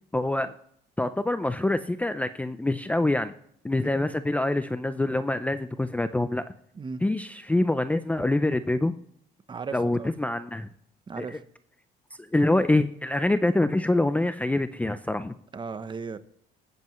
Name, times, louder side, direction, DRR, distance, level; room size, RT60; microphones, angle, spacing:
voice 1, 0.1-0.5 1.0-3.3 3.6-6.4 7.0-8.9 9.7-10.7 11.2-11.4 12.3-15.3, left 2 dB, 10° left, 0.5 m, -25 dB
voice 2, 9.5-10.1 11.1-11.4 15.5-16.2, right 5 dB, 30° right, 0.9 m, -36 dB
21.0 x 8.0 x 3.1 m
cardioid pair, 110°, 17 cm